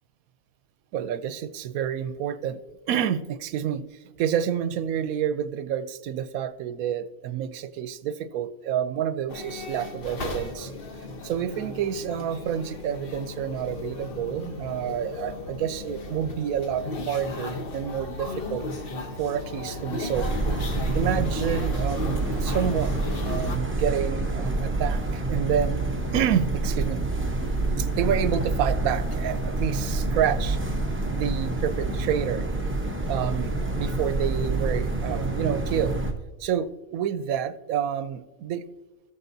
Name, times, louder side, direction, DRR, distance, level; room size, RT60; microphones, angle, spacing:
voice 1, 0.9-2.6 2.9-3.9 4.2-10.7 11.2-18.6 19.2-20.3 20.9-23.0 23.2-25.8 26.1-27.0 27.8-30.6 31.1-32.5 33.1-36.0 36.4-38.6, right 9 dB, 85° right, 13 dB, 1.0 m, -28 dB
sound 1, 9.3-23.6, left 2 dB, 45° left, 1.1 m, -35 dB
sound 2, 20.1-36.1, right 2 dB, 10° right, 0.6 m, -27 dB
17.5 x 7.1 x 2.7 m, 1.1 s
omnidirectional pair, 1.5 m